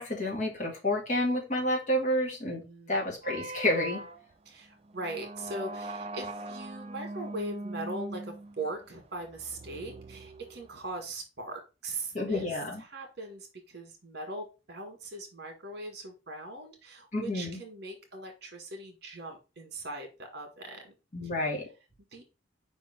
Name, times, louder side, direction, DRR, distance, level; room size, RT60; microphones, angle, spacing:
voice 1, 0.0-4.0 12.1-12.8 17.1-17.6 21.1-21.7, left 1 dB, 40° left, -1 dB, 2.0 m, -30 dB
voice 2, 2.6-3.1 4.5-12.5 12.8-20.9 22.1-22.2, right 2 dB, 55° right, 4 dB, 1.8 m, -40 dB
sound 1, 3.2-11.0, right 2 dB, 30° right, 0.5 m, -41 dB
5.1 x 3.6 x 5.0 m, 0.30 s
head